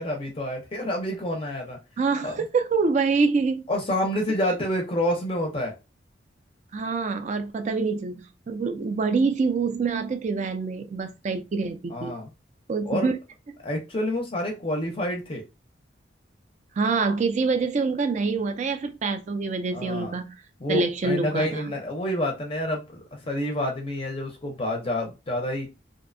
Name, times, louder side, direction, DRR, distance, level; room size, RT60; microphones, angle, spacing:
voice 1, 0.0-1.8 2.2-2.4 3.7-5.7 11.9-12.3 12.8-13.1 13.6-15.4 19.7-20.2 20.6-25.7, left 1 dB, 30° left, 0.5 m, -28 dB
voice 2, 2.0-3.7 4.5-4.6 6.7-12.1 12.7-13.1 16.8-20.4 20.7-21.6, right 4 dB, 40° right, 0.3 m, -26 dB
2.6 x 2.1 x 2.5 m
head